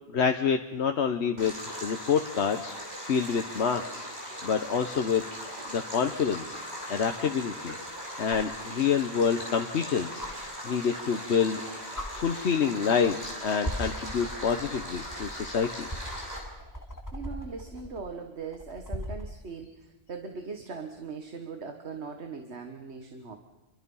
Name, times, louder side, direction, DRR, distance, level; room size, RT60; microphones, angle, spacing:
voice 1, 0.1-2.7 3.0-4.1 4.4-5.2 5.7-6.6 6.9-11.6 12.1-15.9, left 6 dB, 90° left, 6 dB, 1.2 m, -27 dB
Stream, 1.4-16.4, equal, 40° right, 6.4 m, -39 dB
sound 1, 8.3-8.6 10.2-10.3 11.5-11.6 11.9-12.1 13.0-13.3 13.6-19.3 21.0-21.1, equal, 15° left, 2.5 m, -39 dB
voice 2, 17.1-23.4, right 5 dB, 90° right, 5 dB, 1.8 m, -40 dB
27.5 x 23.5 x 5.6 m, 1.0 s
omnidirectional pair, 1.1 m